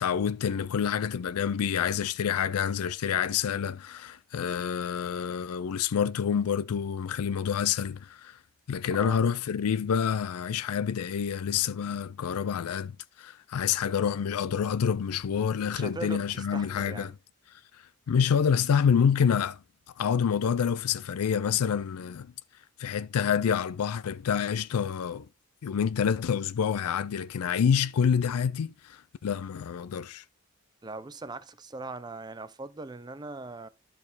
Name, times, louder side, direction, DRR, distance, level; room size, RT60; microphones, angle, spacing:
voice 1, 0.0-8.4 8.7-17.1 17.7-19.6 20.0-22.3 22.8-25.3 25.6-30.2, left 7 dB, 85° left, 0.4 m, -27 dB
voice 2, 15.7-17.1 30.8-33.7, right 3 dB, 20° right, 0.4 m, -40 dB
11.5 x 4.3 x 4.0 m
head